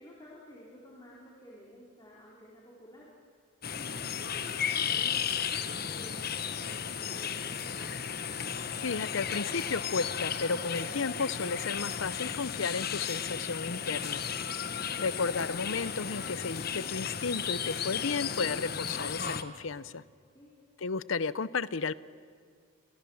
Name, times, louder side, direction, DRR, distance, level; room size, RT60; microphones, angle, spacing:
voice 1, 0.0-3.1 3.7-8.1 20.3-20.5, equal, 20° left, -5 dB, 4.1 m, -52 dB
sound 1, 3.6-19.4, left 7 dB, 45° left, 1.2 m, -34 dB
voice 2, 8.8-14.2 15.0-20.0 20.8-21.9, left 4 dB, 75° left, 18 dB, 0.7 m, -33 dB
29.5 x 26.5 x 7.2 m, 2.2 s
head